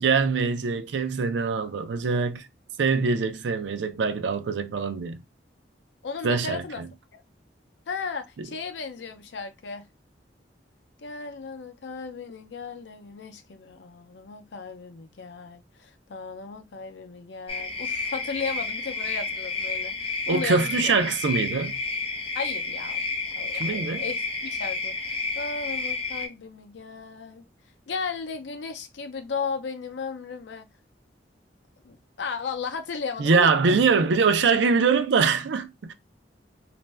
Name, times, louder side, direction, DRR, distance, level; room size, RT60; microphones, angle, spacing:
voice 1, 0.0-2.5 2.8-5.2 6.2-6.9 20.3-21.8 23.5-24.0 33.2-35.9, right 5 dB, 85° right, 0.4 m, -23 dB
voice 2, 6.0-6.8 7.1-7.2 7.9-9.8 11.0-20.7 22.3-23.0 23.4-27.5 27.9-30.7 31.8-33.8, left 5 dB, 85° left, 0.5 m, -35 dB
sound 1, 17.5-26.3, left 4 dB, 35° left, 0.6 m, -30 dB
2.5 x 2.1 x 3.2 m
head